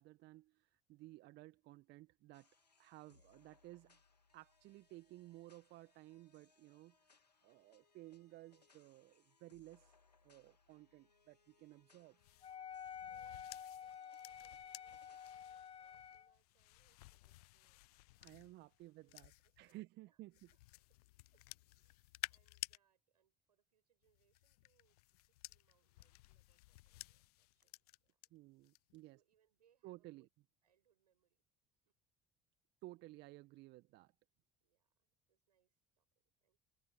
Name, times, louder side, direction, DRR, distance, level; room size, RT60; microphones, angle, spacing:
voice 1, 0.0-2.5 2.8-4.0 4.3-10.0 10.2-12.1 18.2-19.3 19.6-20.3 28.3-29.2 29.8-30.2 32.8-34.1, right 18 dB, 60° right, 1.7 m, -56 dB
sound 1, 2.3-15.3, left 4 dB, 90° left, 2.8 m, -73 dB
voice 2, 3.0-3.3 11.7-12.1 13.0-21.0 21.3-21.5 21.8-27.8 28.0-28.2 29.0-30.3 30.6-31.5 31.8-32.0 34.6-36.6, right 9 dB, 80° right, 7.9 m, -81 dB
sound 2, 12.2-19.7 20.3-22.8 24.0-28.3 28.6-29.0, left 21 dB, 70° left, 0.7 m, -54 dB
Wind instrument woodwind instrument, 12.4-16.3, left 8 dB, 30° left, 0.5 m, -50 dB
figure-of-eight pair, 55°, 20 cm